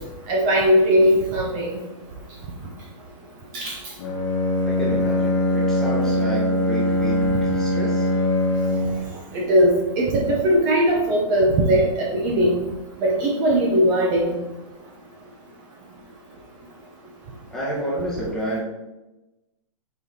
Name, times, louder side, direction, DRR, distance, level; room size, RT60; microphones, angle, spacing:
voice 1, 0.3-1.7 3.5-3.8 9.3-12.6 13.0-14.3, equal, 30° right, -2 dB, 1.0 m, -19 dB
Bowed string instrument, 4.0-9.1, left 1 dB, 40° left, 1.2 m, -22 dB
voice 2, 4.6-8.1 17.5-18.6, equal, 5° left, -7 dB, 1.4 m, -30 dB
6.8 x 4.5 x 3.8 m, 1.0 s
hypercardioid pair, 165°, 17 cm